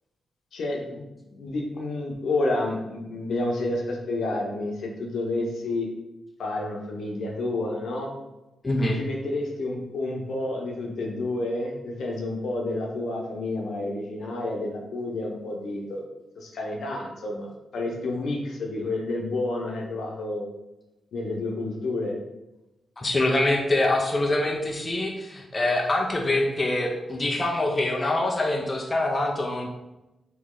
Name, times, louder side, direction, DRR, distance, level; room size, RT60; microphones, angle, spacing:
voice 1, 0.5-1.0 1.3-5.9 6.4-8.1 8.9-16.0 16.4-20.5 21.1-22.1, left 2 dB, 75° left, 0 dB, 0.8 m, -30 dB
voice 2, 8.6-9.0 23.0-29.7, left 2 dB, 25° left, 0 dB, 0.5 m, -24 dB
3.1 x 2.9 x 3.7 m, 0.99 s
cardioid pair, 110°, 0 cm